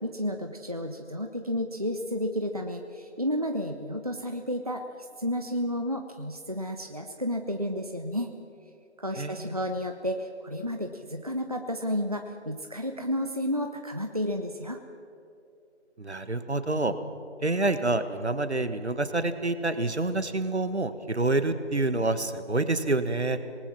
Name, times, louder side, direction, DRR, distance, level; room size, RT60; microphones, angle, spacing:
voice 1, 0.0-4.8 5.2-8.3 9.0-14.8, equal, 30° right, 4 dB, 0.8 m, -31 dB
voice 2, 9.2-9.5 16.0-16.9 17.4-23.4, right 2 dB, 65° right, 11 dB, 1.6 m, -27 dB
26.5 x 19.0 x 6.0 m, 2.5 s
figure-of-eight pair, 170°, 35 cm